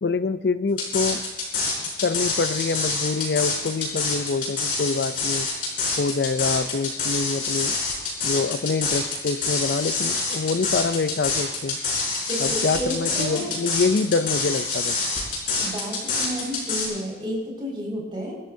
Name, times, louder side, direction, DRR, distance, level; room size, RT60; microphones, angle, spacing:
voice 1, 0.0-1.2 2.0-5.5 6.0-7.8 8.2-11.8 12.4-15.0, left 4 dB, 70° left, 13 dB, 0.4 m, -25 dB
sound 1, 0.8-16.9, left 4 dB, 50° left, 5.1 m, -26 dB
voice 2, 12.3-13.6 15.6-18.3, equal, 30° right, -4 dB, 5.1 m, -31 dB
27.0 x 13.0 x 2.7 m, 1.3 s
head